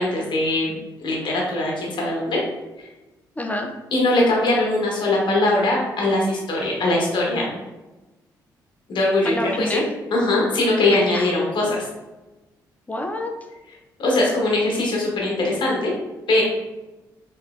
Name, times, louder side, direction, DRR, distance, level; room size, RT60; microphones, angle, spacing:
voice 1, 0.0-2.4 2.8-2.9 3.9-7.5 8.9-9.8 10.1-11.9 14.0-15.9 16.3-16.4, left 2 dB, 50° left, -2 dB, 1.1 m, -21 dB
voice 2, 3.4-3.7 9.2-9.8 11.1-11.3 12.9-13.3, left 1 dB, 15° left, 3 dB, 0.4 m, -27 dB
3.2 x 2.9 x 2.4 m, 1.1 s
hypercardioid pair, 40°, 10 cm